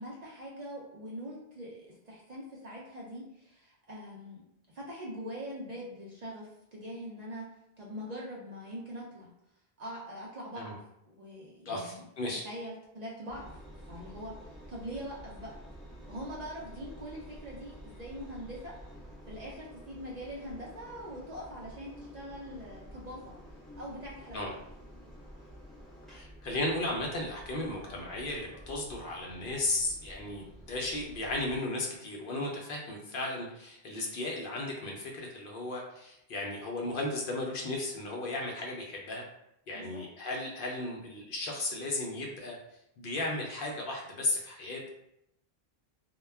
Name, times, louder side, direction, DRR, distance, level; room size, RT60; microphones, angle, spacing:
voice 1, 0.0-4.4 4.7-7.5 7.8-9.3 9.8-10.8 11.1-12.0 12.3-13.6 13.8-15.5 16.1-18.8 19.3-23.3 23.8-24.6 39.7-40.0, equal, 50° right, -4 dB, 0.5 m, -43 dB
voice 2, 11.7-12.4 24.3-24.5 26.1-39.2 39.7-42.6 43.0-44.9, left 2 dB, 65° left, -1 dB, 0.7 m, -35 dB
Engine, 13.3-31.6, equal, ahead, 0.8 m, -50 dB
2.2 x 2.1 x 3.3 m, 0.80 s
omnidirectional pair, 1.1 m